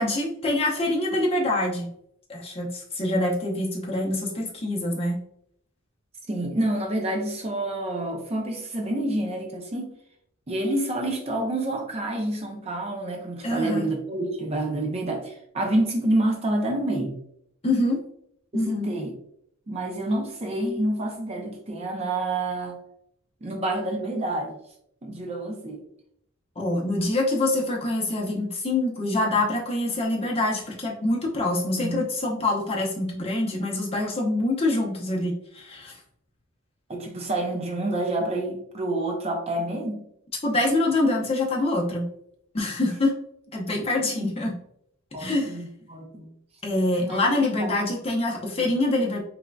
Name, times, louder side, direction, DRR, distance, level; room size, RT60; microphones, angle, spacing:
voice 1, 0.0-1.9 2.3-5.2 13.4-13.9 17.6-18.0 18.5-18.9 26.6-36.0 40.4-42.1 42.5-43.2 43.5-44.6 45.2-45.5 46.6-49.2, left 2 dB, 25° left, -1 dB, 0.7 m, -25 dB
voice 2, 6.3-9.9 10.5-17.2 18.5-19.1 19.7-22.8 23.4-24.6 25.0-25.8 31.7-32.0 36.9-40.0 43.7-44.2 45.1-46.3 47.0-47.2 47.6-47.7 48.6-48.7, right 1 dB, 30° right, 2 dB, 0.5 m, -28 dB
3.6 x 3.4 x 2.2 m, 0.72 s
head